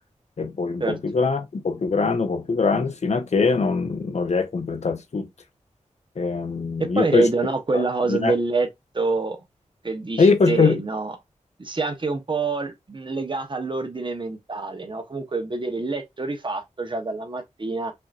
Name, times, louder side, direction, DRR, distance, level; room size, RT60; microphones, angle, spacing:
voice 1, 0.4-5.3 6.2-7.3 7.7-8.3 10.2-10.8, left 4 dB, 60° left, 0.8 m, -22 dB
voice 2, 6.8-8.7 8.9-9.4 9.8-11.1 11.6-17.9, right 3 dB, 40° right, 0.9 m, -26 dB
5.5 x 2.7 x 2.4 m
wide cardioid pair, 85°, 13 cm